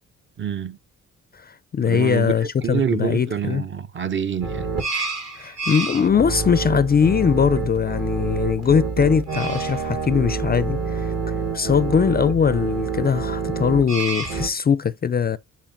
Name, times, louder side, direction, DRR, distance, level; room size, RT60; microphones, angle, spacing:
voice 1, 0.4-0.8 1.8-2.3 2.6-4.7, right 7 dB, 40° right, 0.6 m, -26 dB
voice 2, 1.3-3.6 5.4-11.1 11.5-15.4, left 7 dB, 30° left, 0.4 m, -21 dB
sound 1, 4.4-14.5, right 4 dB, 55° right, 1.8 m, -27 dB
9.0 x 4.4 x 2.5 m
cardioid pair, 80°, 31 cm